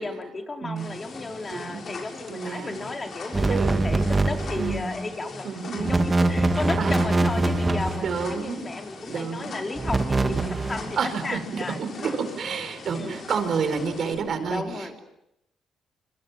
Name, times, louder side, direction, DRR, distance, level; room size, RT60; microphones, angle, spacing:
voice 1, 0.0-5.5 5.8-12.1 12.9-13.2 14.5-15.0, left 3 dB, 25° left, 4 dB, 4.5 m, -34 dB
voice 2, 0.6-0.9 1.5-1.9 2.3-2.8 3.5-3.9 4.6-5.0 5.4-5.9 6.8-7.2 8.0-8.6 9.1-9.6 10.3-10.6 11.0-15.0, right 5 dB, 55° right, 9 dB, 4.7 m, -30 dB
sound 1, 0.8-14.1, left 4 dB, 50° left, 6.6 m, -41 dB
sound 2, 3.3-4.9 5.8-8.4 9.8-10.9, right 2 dB, 20° right, 2.2 m, -24 dB
28.5 x 26.5 x 7.5 m, 0.82 s
cardioid pair, 90°, 0 cm